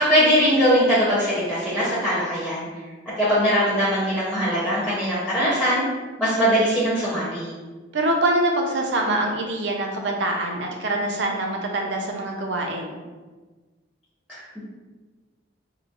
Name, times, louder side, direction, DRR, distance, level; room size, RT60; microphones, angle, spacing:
voice 1, 0.0-2.7 3.2-5.8 6.2-7.5 14.3-14.6, equal, 5° left, -10 dB, 0.6 m, -21 dB
voice 2, 7.9-13.0, right 1 dB, 70° right, 1 dB, 0.5 m, -24 dB
3.7 x 2.0 x 2.4 m, 1.3 s
head